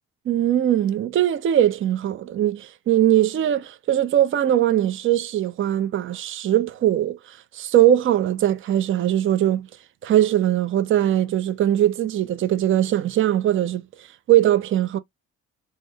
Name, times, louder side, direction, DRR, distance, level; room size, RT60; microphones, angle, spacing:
voice 1, 0.3-7.2 7.5-9.7 10.0-13.8 14.3-15.0, right 12 dB, 45° right, 0.5 m, -20 dB
3.6 x 2.1 x 3.2 m
cardioid pair, 90°, 30 cm